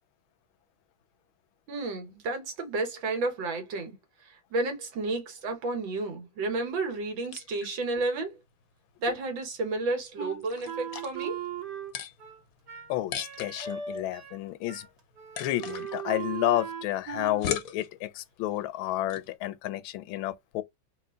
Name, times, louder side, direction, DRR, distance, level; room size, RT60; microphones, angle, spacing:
voice 1, 1.7-4.0 4.5-8.4 9.0-11.4, right 3 dB, 75° right, 2.0 m, -31 dB
sound 1, 6.5-19.3, left 8 dB, 60° left, 0.9 m, -42 dB
Wind instrument woodwind instrument, 10.2-14.4 14.7-14.9 15.1-17.5, right 7 dB, 55° right, 1.7 m, -38 dB
voice 2, 12.9-14.9 15.4-20.6, left 15 dB, 85° left, 1.4 m, -31 dB
4.4 x 2.5 x 3.7 m
omnidirectional pair, 2.2 m